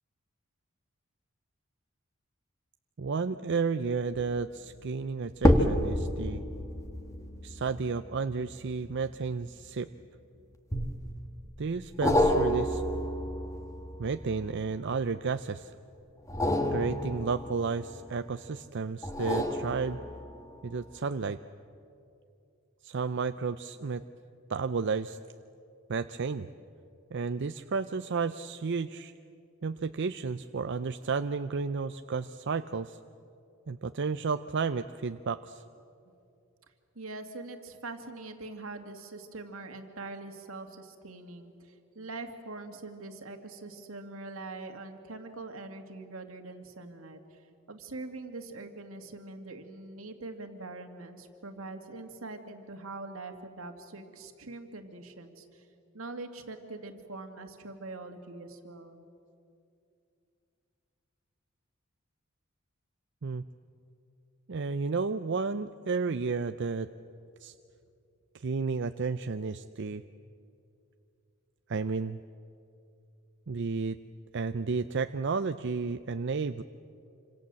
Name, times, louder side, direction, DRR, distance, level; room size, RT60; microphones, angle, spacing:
voice 1, 3.0-6.4 7.4-9.9 11.6-12.8 14.0-15.7 16.7-20.0 20.6-21.4 22.8-24.0 24.5-25.2 25.9-26.5 27.1-29.1 29.6-33.0 33.7-35.6 63.2-63.4 64.5-66.9 67.4-67.5 68.3-70.0 71.7-72.2 73.5-74.0 74.3-76.6, right 4 dB, 60° right, 10 dB, 0.5 m, -32 dB
sound 1, 4.1-4.5 5.3-10.0 10.7-11.3 12.0-15.0 16.2-18.3 19.0-20.4 20.9-21.0, left 1 dB, 15° left, 1.7 m, -30 dB
voice 2, 37.0-47.4 47.7-55.7 55.9-59.1, right 3 dB, 80° right, 5 dB, 2.3 m, -43 dB
27.0 x 26.0 x 7.6 m, 2.6 s
head